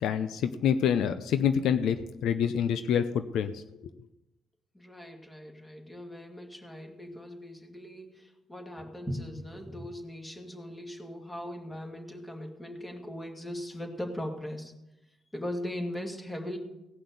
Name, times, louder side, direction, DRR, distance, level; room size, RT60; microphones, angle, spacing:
voice 1, 0.0-3.6, left 8 dB, 80° left, 11 dB, 0.6 m, -27 dB
voice 2, 4.7-14.7 15.3-16.6, left 1 dB, 15° left, 2 dB, 2.4 m, -39 dB
17.5 x 5.8 x 6.8 m, 0.93 s
cardioid pair, 90°, 0 cm